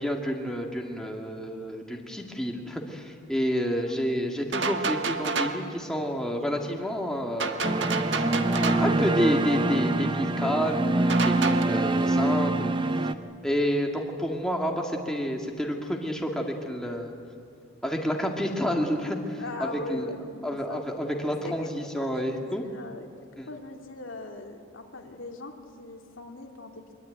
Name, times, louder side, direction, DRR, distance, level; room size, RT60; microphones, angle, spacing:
voice 1, 0.0-13.1 13.4-17.1 17.8-20.1 20.4-22.6 23.4-23.5, equal, 5° left, 1 dB, 2.1 m, -29 dB
sound 1, 4.5-5.7 7.4-9.0 11.1-11.6, right 4 dB, 60° right, 1.5 m, -29 dB
sound 2, 7.6-13.1, right 2 dB, 25° right, 0.7 m, -25 dB
voice 2, 19.4-20.8 21.4-23.1 23.5-26.8, left 2 dB, 75° left, 2 dB, 2.4 m, -40 dB
24.0 x 23.0 x 9.4 m, 2.4 s
head